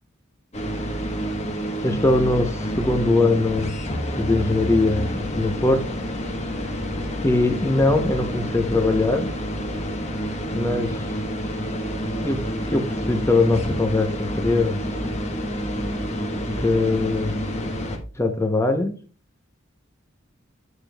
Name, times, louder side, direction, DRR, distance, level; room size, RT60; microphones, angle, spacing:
sound 1, 0.5-18.0, equal, 35° left, 1.1 m, -28 dB
voice 1, 1.8-3.7 4.2-5.9 7.2-9.3 10.5-11.0 12.2-14.8 16.6-17.4 18.2-18.9, left 2 dB, 15° left, 6 dB, 0.7 m, -21 dB
8.1 x 6.9 x 2.2 m, 0.36 s
head